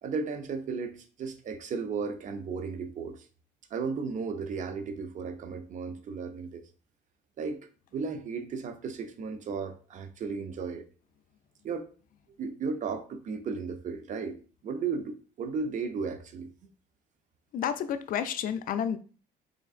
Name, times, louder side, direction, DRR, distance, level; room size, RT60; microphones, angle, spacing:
voice 1, 0.0-3.3 3.7-6.6 7.4-7.6 7.9-10.9 11.6-11.9 12.4-14.4 14.6-16.5, right 5 dB, 50° right, 0.6 m, -35 dB
voice 2, 17.5-19.0, left 8 dB, 55° left, 0.4 m, -30 dB
3.8 x 3.4 x 2.4 m
cardioid pair, 110°, 17 cm